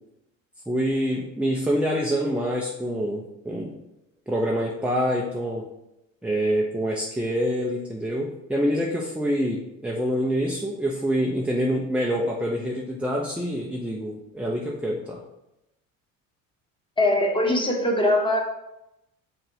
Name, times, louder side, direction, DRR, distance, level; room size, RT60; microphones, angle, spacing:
voice 1, 0.7-3.8 4.3-5.7 6.2-15.2, equal, 5° right, -1 dB, 0.8 m, -26 dB
voice 2, 17.0-18.4, left 1 dB, 10° left, 0 dB, 1.6 m, -21 dB
5.4 x 3.8 x 5.6 m, 0.90 s
hypercardioid pair, 70°, 40 cm